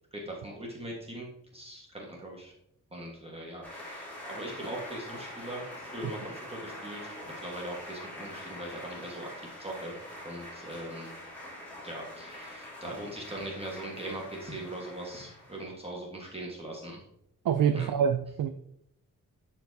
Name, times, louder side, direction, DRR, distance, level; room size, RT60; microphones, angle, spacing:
voice 1, 0.1-1.3 1.5-2.5 2.9-7.1 7.4-10.0 10.2-11.1 11.8-17.0 17.7-17.9, right 1 dB, 20° right, 1.4 m, -40 dB
sound 1, 3.6-15.7, left 1 dB, 5° left, 2.9 m, -44 dB
voice 2, 17.4-18.5, right 7 dB, 85° right, 0.5 m, -25 dB
12.0 x 4.4 x 2.8 m
wide cardioid pair, 145°, 32 cm